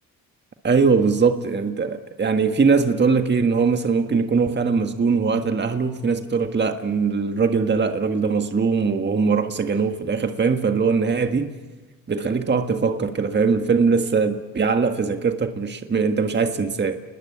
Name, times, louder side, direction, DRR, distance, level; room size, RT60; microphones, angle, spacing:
voice 1, 0.6-11.5 12.1-17.0, right 5 dB, 30° right, 1.6 m, -21 dB
29.5 x 20.5 x 8.6 m
cardioid pair, 85°, 38 cm